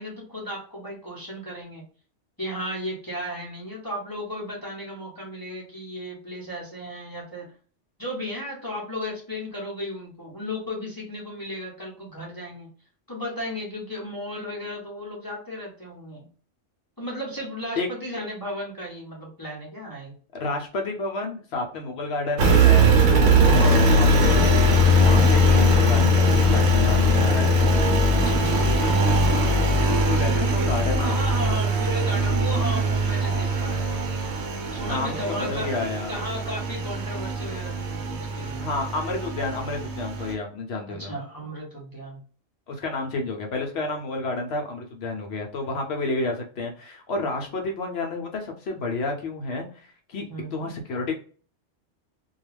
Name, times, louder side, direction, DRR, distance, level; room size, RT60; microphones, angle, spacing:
voice 1, 0.0-1.8 2.4-7.5 8.0-12.7 13.1-16.3 17.0-20.2 28.2-28.7 31.0-34.1 34.7-35.7 36.1-38.6 40.9-42.2 50.3-50.7, equal, 20° left, -3 dB, 0.6 m, -34 dB
voice 2, 20.3-24.5 24.9-27.5 28.7-31.1 34.8-35.2 35.5-36.2 38.6-41.1 42.7-50.3 50.5-51.2, left 3 dB, 65° left, 2 dB, 0.8 m, -30 dB
Engine, 22.4-40.3, equal, 70° right, 0.9 m, -20 dB
2.3 x 2.3 x 3.1 m, 0.40 s
omnidirectional pair, 1.2 m